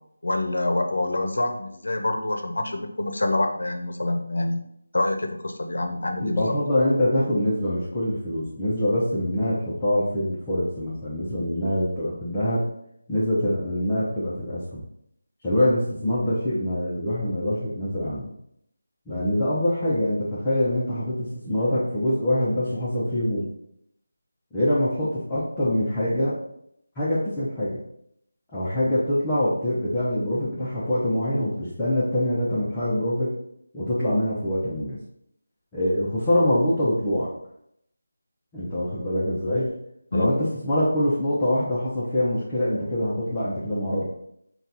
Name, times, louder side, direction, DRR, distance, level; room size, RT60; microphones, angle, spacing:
voice 1, 0.2-4.6 4.9-6.5 40.1-40.3, left 2 dB, 70° left, 5 dB, 0.7 m, -26 dB
voice 2, 6.2-12.7 13.1-14.8 15.4-18.3 19.1-23.4 24.5-26.4 27.0-27.8 28.5-33.3 33.7-35.0 35.7-37.3 38.5-39.7 40.1-44.0, left 1 dB, 10° left, -10 dB, 0.6 m, -24 dB
3.9 x 2.3 x 4.0 m, 0.74 s
figure-of-eight pair, 170°, 0 cm